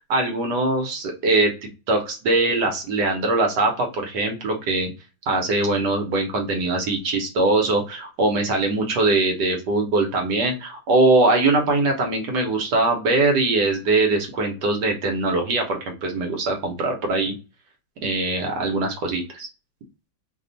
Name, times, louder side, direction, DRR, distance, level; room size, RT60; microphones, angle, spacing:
voice 1, 0.0-1.5 1.9-4.9 5.3-17.3 18.0-19.5, right 2 dB, 65° right, 2 dB, 1.3 m, -22 dB
3.3 x 2.3 x 3.9 m, 0.31 s
omnidirectional pair, 2.2 m